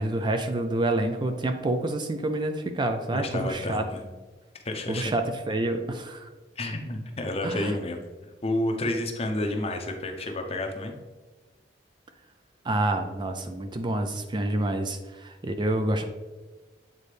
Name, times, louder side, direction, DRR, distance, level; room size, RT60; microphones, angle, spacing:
voice 1, 0.0-3.8 4.9-6.3 7.4-7.7 12.7-16.0, right 2 dB, 25° right, 6 dB, 0.4 m, -28 dB
voice 2, 3.1-4.0 4.6-5.1 6.6-11.0, left 1 dB, 35° left, 3 dB, 0.7 m, -30 dB
8.3 x 4.0 x 3.3 m, 1.2 s
head